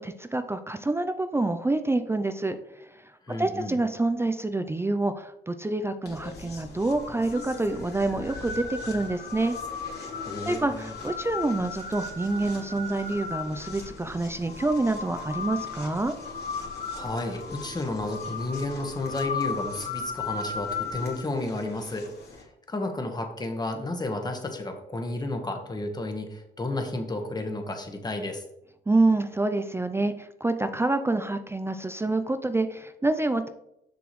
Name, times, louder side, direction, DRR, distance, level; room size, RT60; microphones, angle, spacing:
voice 1, 0.0-9.5 10.5-16.1 28.9-33.5, right 2 dB, 10° right, 9 dB, 0.4 m, -27 dB
voice 2, 3.2-3.8 10.2-10.9 16.9-22.1 22.4-28.4, left 2 dB, 20° left, 4 dB, 1.3 m, -32 dB
sound 1, 6.1-22.4, left 4 dB, 55° left, 2.3 m, -36 dB
7.0 x 5.9 x 3.1 m, 0.82 s
cardioid pair, 90°, 20 cm